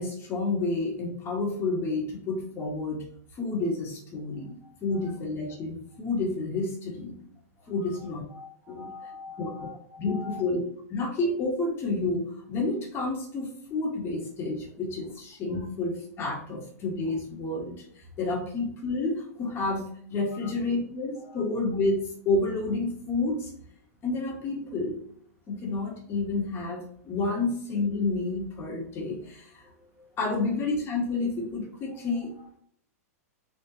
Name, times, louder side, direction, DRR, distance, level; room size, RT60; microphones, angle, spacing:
voice 1, 0.0-3.1 3.3-7.2 7.7-8.2 8.7-8.9 9.4-9.7 10.0-10.6 10.9-23.5 24.0-25.0 25.5-29.6 30.2-32.3, left 3 dB, 30° left, -1 dB, 1.3 m, -30 dB
voice 2, 7.8-9.8 10.1-10.4 20.3-20.5 21.2-21.3 27.3-27.4 29.6-30.1 32.3-32.6, left 4 dB, 20° right, -3 dB, 1.5 m, -45 dB
4.0 x 3.3 x 2.8 m, 0.66 s
hypercardioid pair, 130°, 8 cm